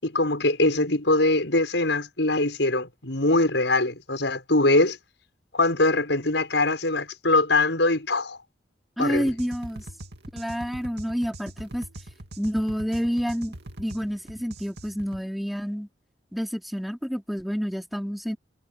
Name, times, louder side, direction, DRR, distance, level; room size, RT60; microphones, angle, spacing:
voice 1, 0.0-5.0 5.5-8.4 9.0-9.3, left 2 dB, 80° left, 6.5 m, -22 dB
voice 2, 9.0-9.8 10.3-11.8 12.4-15.9 16.3-18.4, equal, ahead, 4.5 m, -29 dB
sound 1, 9.1-15.2, right 1 dB, 65° right, 2.6 m, -42 dB
head